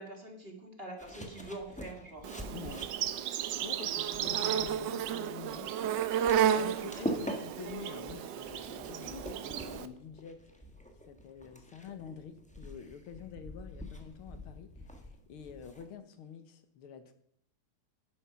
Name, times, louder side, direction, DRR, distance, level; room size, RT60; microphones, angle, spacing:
voice 1, 0.0-2.3, right 1 dB, 30° right, 3 dB, 2.0 m, -44 dB
sound 1, 1.0-15.9, equal, 5° left, 1.1 m, -45 dB
Insect, 2.2-9.9, right 9 dB, 70° right, 1.3 m, -33 dB
voice 2, 2.5-2.9 3.4-10.4 11.1-17.1, left 7 dB, 90° left, 10 dB, 2.0 m, -48 dB
11.0 x 10.0 x 5.7 m, 0.70 s
omnidirectional pair, 2.3 m